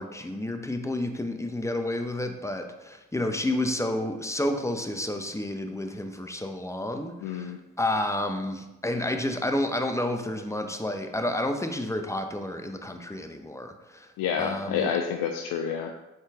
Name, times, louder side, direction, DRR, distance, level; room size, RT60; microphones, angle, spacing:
voice 1, 0.0-14.1 14.4-14.9, left 1 dB, 10° left, 5 dB, 0.6 m, -30 dB
voice 2, 7.2-7.6 14.2-15.9, left 7 dB, 65° left, 4 dB, 0.5 m, -29 dB
3.9 x 3.9 x 3.5 m, 1.0 s
hypercardioid pair, 45°, 37 cm